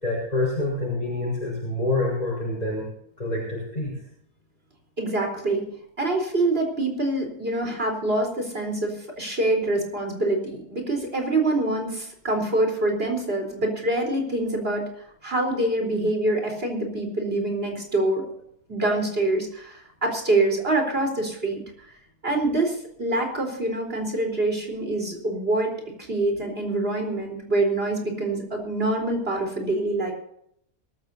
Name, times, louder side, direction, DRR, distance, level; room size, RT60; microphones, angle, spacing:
voice 1, 0.0-2.8 3.2-4.0, left 2 dB, 25° left, -5 dB, 5.2 m, -27 dB
voice 2, 5.0-5.6 6.0-14.9 15.2-18.3 18.7-21.6 22.2-25.7 26.1-30.1, right 2 dB, 40° right, 2 dB, 4.2 m, -25 dB
23.5 x 14.0 x 2.8 m, 0.72 s
omnidirectional pair, 1.6 m